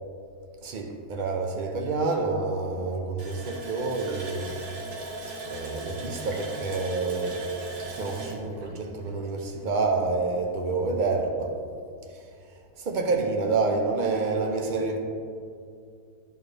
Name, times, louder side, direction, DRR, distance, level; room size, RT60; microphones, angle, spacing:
voice 1, 0.6-4.5 5.5-7.5 8.0-11.6 12.1-12.3 12.8-15.0, right 3 dB, 65° right, 3 dB, 0.4 m, -28 dB
Water tap faucet, 3.2-9.7 10.0-10.1 10.6-10.7, right 2 dB, 80° right, 1.6 m, -39 dB
10.5 x 4.6 x 3.3 m, 2.4 s
omnidirectional pair, 1.6 m